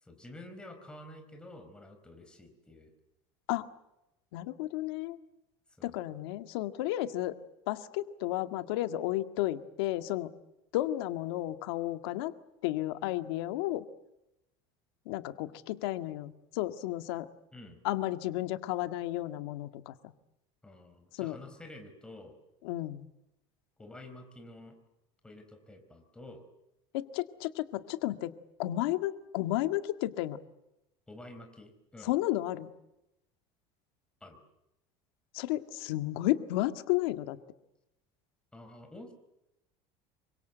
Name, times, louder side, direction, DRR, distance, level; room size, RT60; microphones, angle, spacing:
voice 1, 0.0-2.9 5.8-6.0 17.5-17.8 20.6-22.4 23.8-24.8 25.2-26.4 31.1-32.1 34.2-34.4 38.5-39.1, left 1 dB, 5° left, 5 dB, 4.4 m, -49 dB
voice 2, 4.3-5.2 5.8-7.3 7.7-10.3 10.7-12.3 12.6-13.8 15.1-17.3 17.8-20.0 21.2-21.4 22.6-23.1 26.9-28.3 28.6-30.4 32.0-32.7 35.3-37.4, left 15 dB, 85° left, 8 dB, 1.8 m, -32 dB
27.0 x 24.5 x 8.0 m, 0.89 s
cardioid pair, 160°, 13 cm